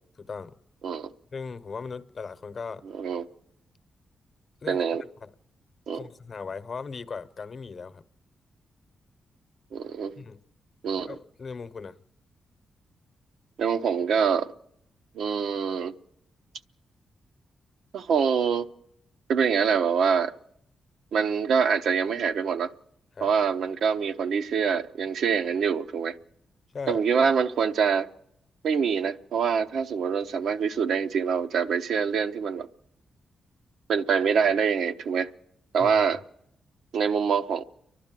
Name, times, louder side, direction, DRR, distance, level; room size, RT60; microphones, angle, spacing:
voice 1, 0.2-0.5 1.3-2.8 4.6-4.8 5.2-5.3 5.9-8.0 10.2-10.4 11.1-12.0 23.2-23.3 26.7-27.0 35.8-36.0, left 5 dB, 50° left, 0.8 m, -38 dB
voice 2, 2.9-3.3 4.7-5.0 5.9-6.0 9.7-10.2 10.8-11.2 13.6-14.5 15.1-15.9 17.9-18.7 19.3-20.3 21.1-22.7 23.2-26.2 26.9-28.1 28.6-32.7 33.9-35.3 35.7-36.2 36.9-37.6, right 6 dB, 80° right, 0.7 m, -25 dB
30.0 x 11.5 x 7.5 m
cardioid pair, 90°, 0 cm